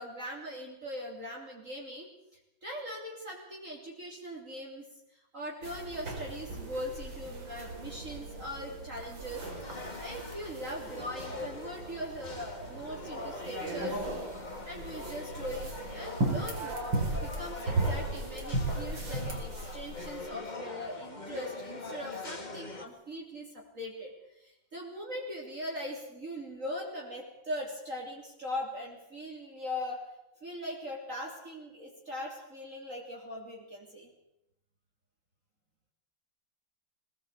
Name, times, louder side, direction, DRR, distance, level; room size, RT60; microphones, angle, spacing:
voice 1, 0.0-2.1 2.6-4.9 5.3-14.0 14.6-16.8 17.1-30.1 30.4-34.1, equal, 40° right, -2 dB, 3.7 m, -40 dB
sound 1, 5.6-20.3, right 2 dB, 85° right, 4.9 m, -37 dB
sound 2, 9.4-22.9, left 3 dB, 25° left, 1.7 m, -43 dB
21.0 x 19.0 x 8.3 m, 0.87 s
omnidirectional pair, 2.0 m